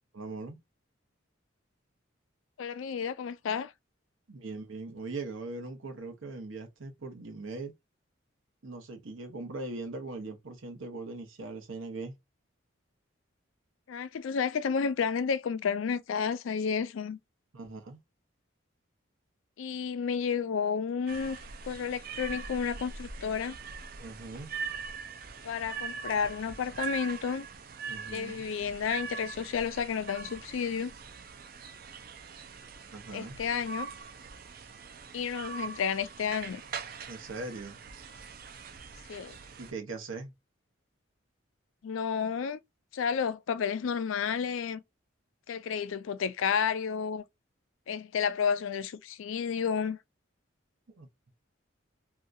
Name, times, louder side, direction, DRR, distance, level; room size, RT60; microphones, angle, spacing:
voice 1, 0.1-0.6 4.3-7.7 8.6-12.1 17.5-18.0 24.0-24.5 27.9-28.5 32.9-33.4 37.1-37.8 39.6-40.3 51.0-51.1, right 3 dB, 80° right, 0.9 m, -40 dB
voice 2, 2.6-3.7 13.9-17.2 19.6-21.4 21.7-23.6 25.4-27.5 28.1-30.9 33.1-33.9 35.1-36.6 39.1-39.4 41.8-42.6 42.9-44.8 45.5-47.2 47.9-50.0, left 6 dB, 80° left, 0.4 m, -31 dB
sound 1, 21.1-39.7, right 5 dB, 45° right, 0.4 m, -42 dB
2.8 x 2.3 x 2.4 m
head